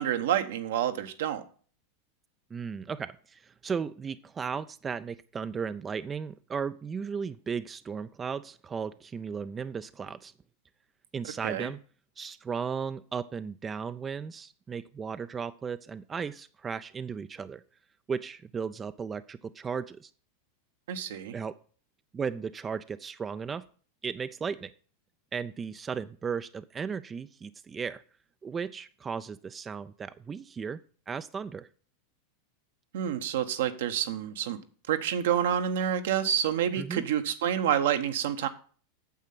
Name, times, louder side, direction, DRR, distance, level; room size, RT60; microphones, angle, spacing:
voice 1, 0.0-1.4 11.4-11.7 20.9-21.3 32.9-34.6 34.9-38.5, right 9 dB, 70° right, 1.1 m, -28 dB
voice 2, 2.5-10.3 11.1-11.8 12.2-17.6 18.1-20.1 21.3-21.6 22.1-23.6 24.0-24.7 25.3-28.0 28.4-30.8 31.1-31.7 36.8-37.0, right 6 dB, 25° right, 0.5 m, -35 dB
9.1 x 7.4 x 5.9 m
hypercardioid pair, 95°, 0 cm